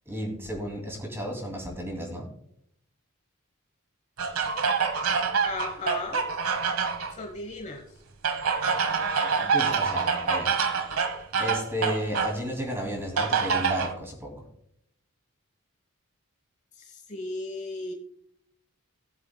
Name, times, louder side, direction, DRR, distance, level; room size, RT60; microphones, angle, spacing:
voice 1, 0.1-2.3 9.2-10.6 11.4-14.4, equal, 10° right, 1 dB, 2.5 m, -33 dB
sound 1, 4.2-7.1 8.2-12.4 13.2-13.9, right 5 dB, 80° right, 1.1 m, -26 dB
voice 2, 5.4-6.2 7.1-7.9 16.8-17.9, left 2 dB, 30° left, 2 dB, 1.1 m, -36 dB
18.5 x 7.6 x 2.2 m, 0.71 s
head